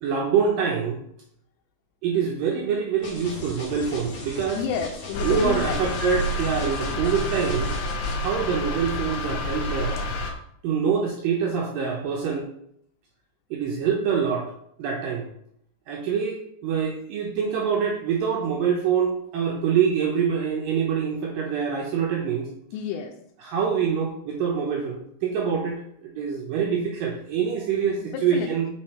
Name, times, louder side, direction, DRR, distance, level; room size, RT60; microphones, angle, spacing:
voice 1, 0.0-1.0 2.0-4.6 5.2-7.7 8.2-10.1 10.6-12.5 13.5-14.5 14.8-15.3 15.9-22.5 23.4-28.7, right 7 dB, 75° right, -1 dB, 2.1 m, -25 dB
sound 1, 3.0-8.4, left 3 dB, 50° left, 1.9 m, -38 dB
voice 2, 4.5-5.9 22.7-23.1 28.1-28.5, left 6 dB, 90° left, 1 dB, 2.9 m, -30 dB
sound 2, 5.1-10.3, left 1 dB, 70° left, 2.7 m, -29 dB
6.2 x 5.3 x 4.4 m, 0.71 s
omnidirectional pair, 4.9 m